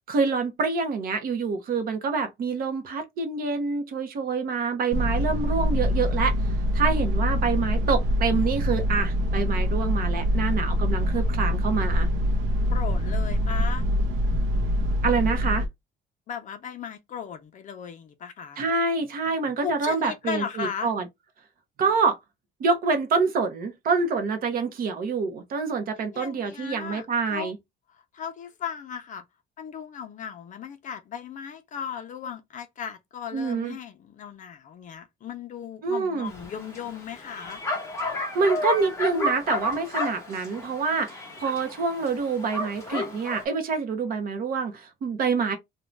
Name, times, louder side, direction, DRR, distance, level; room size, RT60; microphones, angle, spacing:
voice 1, 0.1-6.3 6.7-12.1 15.0-15.6 18.6-21.0 21.8-22.2 22.6-27.6 33.3-33.8 35.8-36.3 38.3-45.6, right 4 dB, 50° right, 0.7 m, -26 dB
sound 1, 4.9-15.7, equal, 85° right, 0.6 m, -24 dB
voice 2, 12.7-13.8 16.3-18.6 19.6-20.9 26.1-27.5 28.1-29.2 29.6-37.6, left 8 dB, 40° left, 0.5 m, -36 dB
Bark, 36.3-43.4, left 2 dB, 15° left, 0.9 m, -32 dB
2.5 x 2.2 x 3.1 m
cardioid pair, 175°, 19 cm